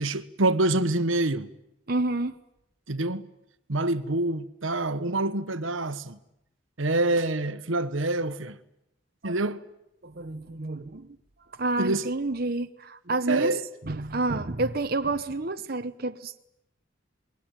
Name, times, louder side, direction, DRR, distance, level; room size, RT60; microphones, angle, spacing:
voice 1, 0.0-1.5 2.9-3.3 3.7-6.2 6.8-8.6 9.2-9.6 11.8-12.1 13.3-14.2, right 2 dB, 80° right, 1.3 m, -26 dB
voice 2, 1.9-2.3 9.2-9.4 10.0-11.1 11.6-13.5 13.9-16.4, right 2 dB, 50° right, 1.0 m, -29 dB
28.0 x 22.0 x 9.1 m
head